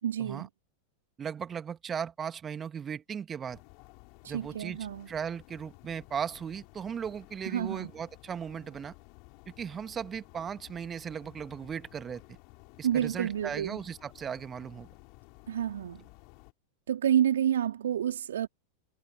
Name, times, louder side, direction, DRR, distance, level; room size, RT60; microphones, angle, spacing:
voice 1, 0.0-0.5 4.2-5.1 7.4-7.9 12.8-13.8 15.5-16.1 16.9-18.5, right 10 dB, 65° right, 3.1 m, -29 dB
voice 2, 1.2-3.6 4.3-4.8 5.1-8.9 9.5-12.4 12.8-14.9, right 7 dB, 20° right, 2.2 m, -37 dB
sound 1, 3.5-16.5, left 33 dB, 45° left, 6.4 m, -55 dB
figure-of-eight pair, 90°, 0 cm